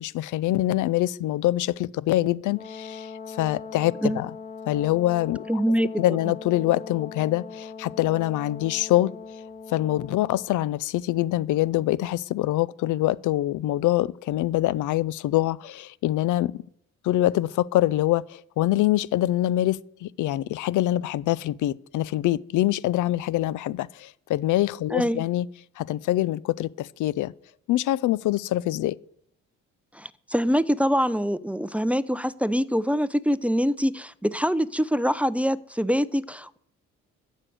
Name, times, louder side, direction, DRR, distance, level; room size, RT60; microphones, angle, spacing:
voice 1, 0.0-4.3 4.7-5.6 6.0-9.1 9.7-16.6 17.0-25.5 25.8-27.3 27.7-29.0, left 15 dB, 80° left, 0.6 m, -25 dB
Brass instrument, 2.5-10.5, left 5 dB, 25° left, 2.7 m, -40 dB
voice 2, 5.5-6.2 24.9-25.2 29.9-36.6, equal, 5° right, 0.6 m, -24 dB
14.0 x 6.5 x 9.2 m
cardioid pair, 90°, 30 cm